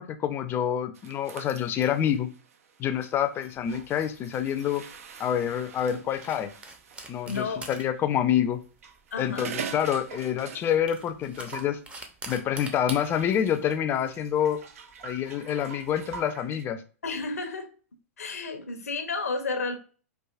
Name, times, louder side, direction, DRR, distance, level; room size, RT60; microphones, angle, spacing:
voice 1, 0.0-2.3 2.8-4.8 5.2-6.5 7.1-8.6 9.2-11.8 12.3-14.6 15.0-16.8, left 9 dB, 25° left, 8 dB, 0.5 m, -27 dB
sound 1, 0.9-7.5 8.6-11.0 11.3-11.8 12.7-16.6, right 6 dB, 70° right, 0.6 m, -44 dB
sound 2, 3.5-16.2, right 2 dB, 15° right, 0.6 m, -46 dB
voice 2, 7.2-7.7 9.1-9.5 17.0-17.7 18.2-19.8, left 4 dB, 90° left, 6 dB, 0.8 m, -32 dB
4.7 x 2.5 x 2.4 m, 0.38 s
hypercardioid pair, 115°, 8 cm